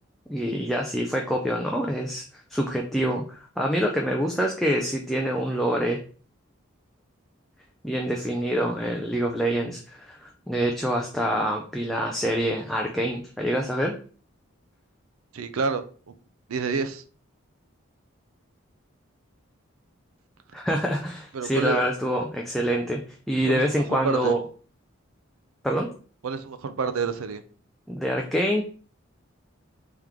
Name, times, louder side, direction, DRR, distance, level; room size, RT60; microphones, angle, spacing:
voice 1, 0.3-6.0 7.8-13.9 20.5-23.0 23.3-24.4 25.6-25.9 27.9-28.6, equal, ahead, 0 dB, 0.3 m, -26 dB
voice 2, 15.3-16.1 16.5-17.0 21.3-21.8 23.5-24.4 26.2-27.4, right 4 dB, 85° right, 12 dB, 0.5 m, -29 dB
3.5 x 3.0 x 3.5 m, 0.42 s
head